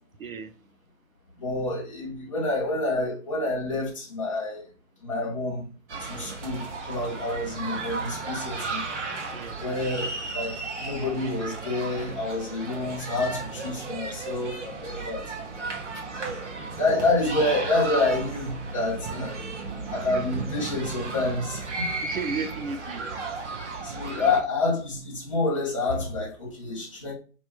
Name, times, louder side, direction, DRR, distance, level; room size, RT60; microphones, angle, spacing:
voice 1, 0.2-0.6 9.3-9.7 15.9-16.1 20.3-20.4 22.0-23.1, right 4 dB, 70° right, 0.8 m, -34 dB
voice 2, 1.4-4.6 5.0-5.7 6.0-8.8 9.6-15.2 16.7-19.4 19.9-21.8 23.8-27.1, left 2 dB, 20° left, 1.1 m, -28 dB
sound 1, 5.9-24.4, right 3 dB, 55° right, 1.4 m, -35 dB
3.3 x 3.0 x 4.6 m
hypercardioid pair, 175°, 42 cm